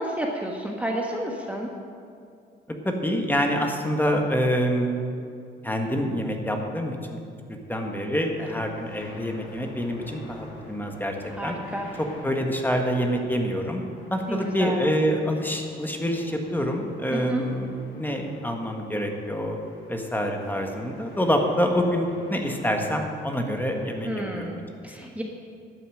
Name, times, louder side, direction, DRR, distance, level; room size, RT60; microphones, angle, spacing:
voice 1, 0.0-1.7 11.4-11.9 14.3-14.8 17.1-17.4 24.0-25.2, right 1 dB, 5° right, 0 dB, 1.3 m, -31 dB
voice 2, 2.8-4.9 5.6-7.2 7.7-11.1 11.4-11.6 12.0-13.8 14.1-19.6 19.9-24.5 24.8-24.9, equal, 10° left, 2 dB, 1.5 m, -26 dB
sound 1, 8.1-24.3, left 2 dB, 75° left, 3.0 m, -47 dB
12.0 x 7.1 x 7.7 m, 2.4 s
cardioid pair, 90°, 20 cm